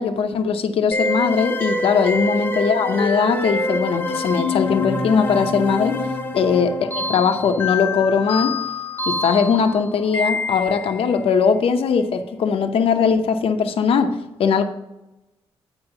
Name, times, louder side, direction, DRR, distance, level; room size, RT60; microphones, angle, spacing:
voice 1, 0.0-6.0 6.3-8.6 9.1-14.6, left 6 dB, 65° left, 6 dB, 0.7 m, -20 dB
sound 1, 0.9-11.1, left 2 dB, 20° left, 0.8 m, -26 dB
8.8 x 4.8 x 5.8 m, 0.96 s
cardioid pair, 90°, 10 cm